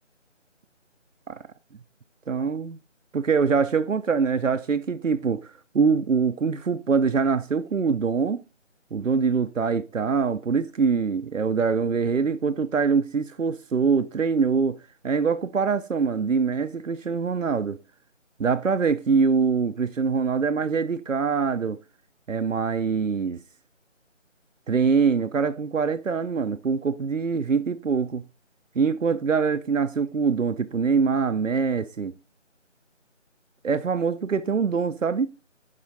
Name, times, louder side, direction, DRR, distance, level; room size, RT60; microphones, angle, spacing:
voice 1, 2.3-2.8 3.1-8.4 8.9-14.8 15.0-17.8 18.4-21.8 22.3-23.4 24.7-28.2 28.8-32.1 33.6-35.3, right 5 dB, 85° right, 0.6 m, -24 dB
7.5 x 5.7 x 3.9 m
figure-of-eight pair, 160°, 37 cm